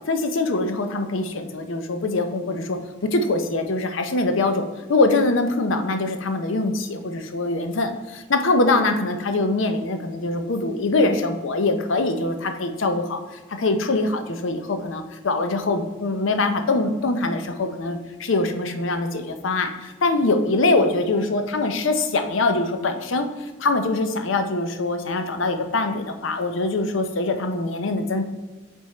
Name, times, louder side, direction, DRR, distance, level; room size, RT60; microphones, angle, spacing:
voice 1, 0.1-2.8 3.1-13.2 13.6-28.2, left 2 dB, 70° left, 7 dB, 0.6 m, -23 dB
7.4 x 3.6 x 4.3 m, 1.2 s
head